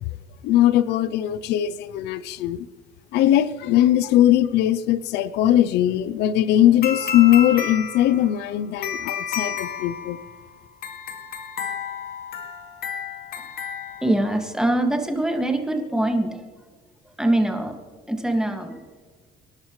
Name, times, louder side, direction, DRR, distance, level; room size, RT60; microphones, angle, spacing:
voice 1, 0.4-2.7 3.1-10.2, left 12 dB, 85° left, 0.6 m, -20 dB
sound 1, 6.8-14.5, left 6 dB, 65° left, 2.1 m, -32 dB
voice 2, 14.0-16.4 17.2-17.7 18.1-18.8, right 1 dB, 5° right, 2.0 m, -23 dB
26.5 x 11.5 x 3.2 m
cardioid pair, 110°, 17 cm